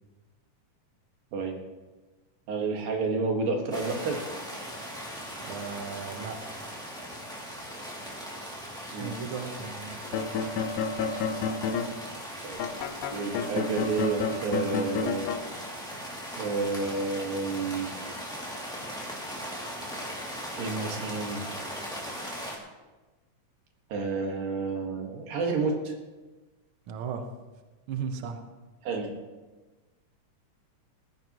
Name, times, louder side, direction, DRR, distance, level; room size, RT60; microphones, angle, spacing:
voice 1, 2.5-4.2 8.9-9.1 12.4-12.6 13.1-15.3 16.4-17.9 20.6-21.4 23.9-26.0 28.8-29.1, right 4 dB, 90° right, 1 dB, 3.6 m, -30 dB
sound 1, 3.7-22.6, equal, ahead, 2.1 m, -39 dB
voice 2, 5.4-6.6 8.9-10.4 26.9-27.2 27.9-28.4, right 6 dB, 60° right, 5 dB, 1.5 m, -36 dB
sound 2, 10.0-11.9 12.6-15.4, left 5 dB, 90° left, 2.6 m, -30 dB
20.0 x 14.5 x 3.1 m, 1.2 s
omnidirectional pair, 3.9 m